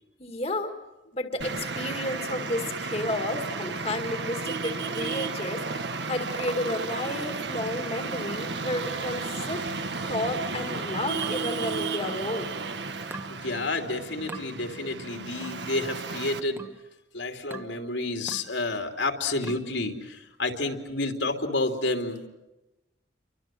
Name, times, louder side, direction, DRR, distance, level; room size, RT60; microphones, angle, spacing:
voice 1, 0.2-0.8 1.1-9.7 10.1-12.6, left 1 dB, 35° left, 5 dB, 1.9 m, -32 dB
Traffic noise roadway noise, 1.4-16.4, right 4 dB, 65° right, 1.7 m, -33 dB
sound 1, 11.2-12.3 13.1-13.4 14.3-14.5 15.4-15.7 16.6-16.9 17.5-17.8 18.3-18.6 19.4-19.7, right 2 dB, 10° right, 1.2 m, -42 dB
voice 2, 13.4-16.6 17.1-22.3, left 2 dB, 75° left, 4 dB, 3.0 m, -30 dB
30.0 x 24.0 x 7.6 m, 0.99 s
head